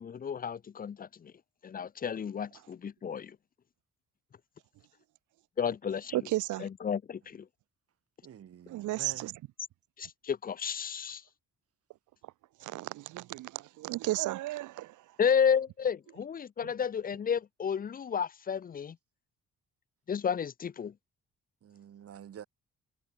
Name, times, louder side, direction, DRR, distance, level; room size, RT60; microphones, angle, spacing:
voice 1, 0.0-1.3 1.6-3.4 5.6-6.2 6.6-7.5 10.0-11.2 15.2-19.0 20.1-20.9, left 7 dB, 30° left, 0.5 m, -32 dB
voice 2, 6.1-6.7 8.7-9.3 12.6-15.0, right 16 dB, 80° right, 0.8 m, -34 dB
voice 3, 8.2-9.3 21.6-22.5, right 9 dB, 50° right, 1.3 m, -48 dB
cardioid pair, 90°, 30 cm